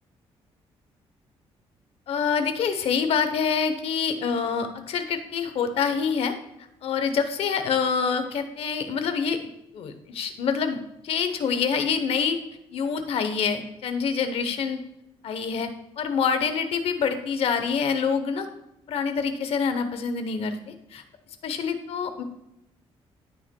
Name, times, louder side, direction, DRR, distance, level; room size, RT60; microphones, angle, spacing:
voice 1, 2.1-6.3 6.8-9.4 9.7-12.4 12.7-14.8 15.2-15.7 16.0-18.5 18.9-21.0 21.4-22.2, left 6 dB, 65° left, 8 dB, 0.9 m, -26 dB
15.0 x 5.6 x 2.3 m, 0.83 s
cardioid pair, 130°, 11 cm